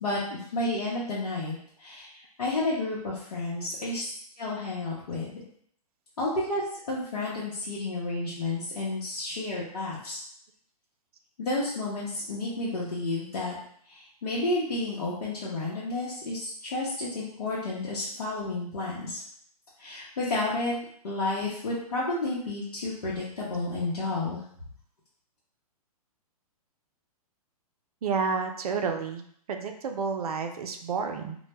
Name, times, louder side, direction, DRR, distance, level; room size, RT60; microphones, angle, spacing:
voice 1, 0.0-2.1 2.4-5.4 6.2-6.6 6.9-10.2 11.4-13.5 13.9-19.2 19.8-20.7 21.0-24.4, left 2 dB, 75° left, -7 dB, 0.8 m, -31 dB
voice 2, 28.0-29.2 29.5-31.4, right 5 dB, 70° right, 5 dB, 0.4 m, -30 dB
2.1 x 2.0 x 3.2 m, 0.65 s
hypercardioid pair, 120°, 20 cm